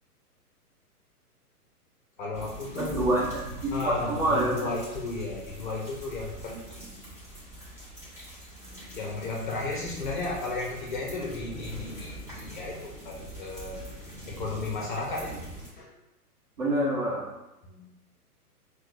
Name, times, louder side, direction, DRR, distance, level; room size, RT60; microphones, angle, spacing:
voice 1, 2.2-3.1 3.7-6.9 8.9-13.9 14.3-15.4 15.8-15.9 17.6-17.9, left 3 dB, 35° left, -2 dB, 0.5 m, -34 dB
sound 1, 2.3-15.7, right 1 dB, 5° right, 1.0 m, -43 dB
voice 2, 2.8-3.3 3.6-4.6 16.6-17.3, right 1 dB, 35° right, -7 dB, 1.2 m, -26 dB
5.8 x 2.3 x 2.5 m, 0.96 s
figure-of-eight pair, 120°, 46 cm